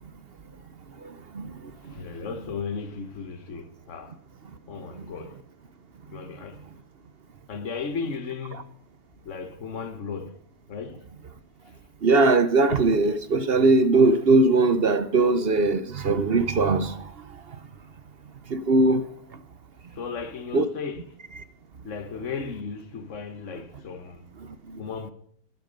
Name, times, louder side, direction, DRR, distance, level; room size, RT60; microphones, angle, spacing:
voice 1, 1.8-4.2 4.7-5.4 6.1-6.7 7.5-8.7 9.2-10.4 10.7-11.0 11.6-11.8 19.9-21.0 21.8-24.3 24.8-25.1, left 5 dB, 50° left, 1.6 m, -35 dB
voice 2, 12.0-17.0 18.5-19.0 20.5-20.7, right 3 dB, 45° right, 0.9 m, -20 dB
12.5 x 12.0 x 5.3 m
omnidirectional pair, 1.8 m